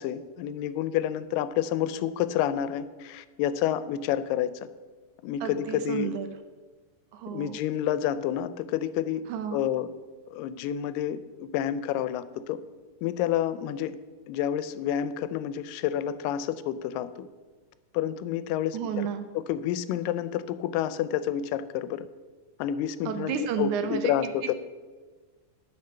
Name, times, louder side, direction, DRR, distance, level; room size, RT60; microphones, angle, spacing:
voice 1, 0.0-4.5 5.2-6.1 7.3-9.2 9.5-9.9 10.3-12.6 13.0-14.0 14.3-17.3 17.9-19.1 19.4-22.1 22.6-24.5, left 10 dB, 90° left, 14 dB, 2.2 m, -29 dB
voice 2, 5.4-6.3 7.1-7.6 9.3-9.6 18.7-19.2 23.1-24.1, right 7 dB, 75° right, 8 dB, 2.0 m, -31 dB
9.6 x 6.1 x 6.5 m, 1.3 s
omnidirectional pair, 3.8 m